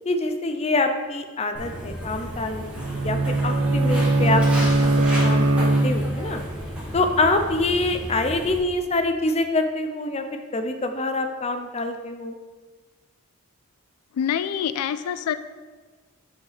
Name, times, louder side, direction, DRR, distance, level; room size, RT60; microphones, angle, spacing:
voice 1, 0.0-3.2 3.4-6.4 6.9-12.3, left 2 dB, 30° left, 7 dB, 0.6 m, -25 dB
Walk footsteps, 1.5-8.6, equal, 5° right, 1.8 m, -33 dB
Bowed string instrument, 2.8-6.4, right 2 dB, 70° right, 0.6 m, -20 dB
voice 2, 14.1-15.4, left 8 dB, 85° left, 13 dB, 0.3 m, -26 dB
8.1 x 6.0 x 4.0 m, 1.4 s
head